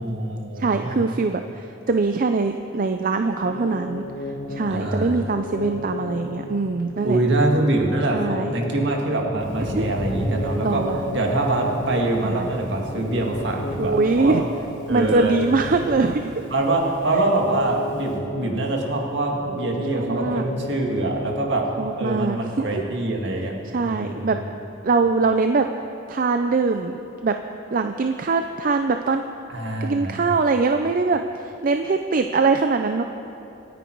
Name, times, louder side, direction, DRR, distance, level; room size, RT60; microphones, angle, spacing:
voice 1, 0.0-1.0 4.7-5.2 7.0-10.8 11.1-14.3 14.9-15.4 16.5-21.6 21.9-23.5 23.8-24.4 29.5-30.2, right 2 dB, 65° right, 0 dB, 2.1 m, -24 dB
voice 2, 0.6-7.2 8.1-8.5 9.7-9.9 10.6-11.2 12.2-12.5 13.8-14.4 14.9-16.3 19.9-20.4 21.8-22.7 23.7-24.4 24.8-25.7 26.1-27.3 27.7-29.2 29.8-33.0, right 4 dB, 45° right, 6 dB, 0.5 m, -22 dB
sound 1, 3.4-22.2, left 1 dB, 70° left, 1.3 m, -34 dB
Thunder, 9.4-18.1, equal, 40° left, 3.6 m, -35 dB
26.5 x 9.3 x 4.6 m, 2.9 s
head